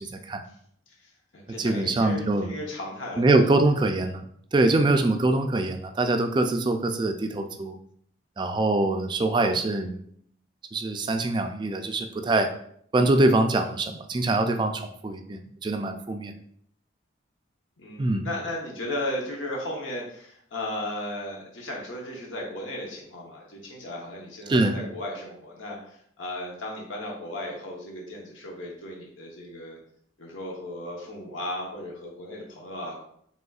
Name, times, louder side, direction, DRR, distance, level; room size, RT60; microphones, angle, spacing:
voice 1, 0.1-0.4 1.6-2.5 3.2-4.3 4.5-7.7 8.4-10.0 10.7-12.5 12.9-16.3 18.0-18.3 24.5-24.8, right 2 dB, 25° right, 6 dB, 0.3 m, -24 dB
voice 2, 0.9-3.2 4.7-4.9 17.8-29.8 30.2-33.0, left 1 dB, 90° left, -1 dB, 1.0 m, -35 dB
5.3 x 3.4 x 2.4 m, 0.66 s
head